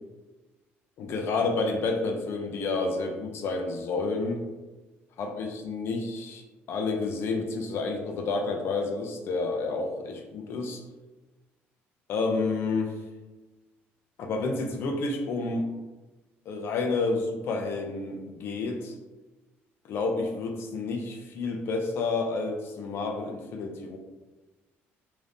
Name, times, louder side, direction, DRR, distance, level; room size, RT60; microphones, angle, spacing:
voice 1, 1.0-4.4 5.2-6.4 6.7-10.8 12.1-12.9 14.2-15.7 16.5-19.0 19.9-24.0, left 3 dB, 60° left, 4 dB, 0.5 m, -30 dB
2.7 x 2.5 x 3.4 m, 1.2 s
cardioid pair, 130°, 5 cm